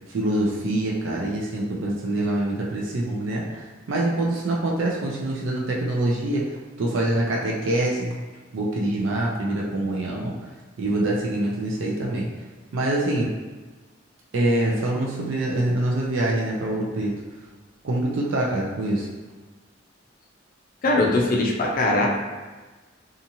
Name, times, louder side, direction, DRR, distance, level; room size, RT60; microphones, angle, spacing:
voice 1, 0.1-6.5 6.8-8.1 8.5-10.4 10.8-12.3 12.7-13.3 14.3-17.1 17.8-19.1, right 1 dB, 80° right, -3 dB, 0.4 m, -25 dB
voice 2, 20.8-22.1, left 2 dB, 45° left, -1 dB, 0.5 m, -21 dB
2.8 x 2.4 x 2.6 m, 1.3 s
head